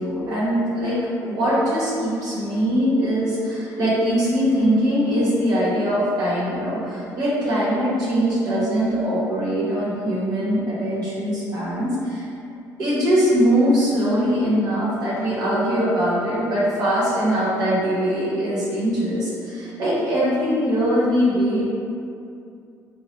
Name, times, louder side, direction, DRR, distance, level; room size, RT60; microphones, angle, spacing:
voice 1, 0.0-12.2 12.8-21.7, equal, 65° right, -9 dB, 1.3 m, -22 dB
4.0 x 2.5 x 3.2 m, 2.5 s
cardioid pair, 110°, 7 cm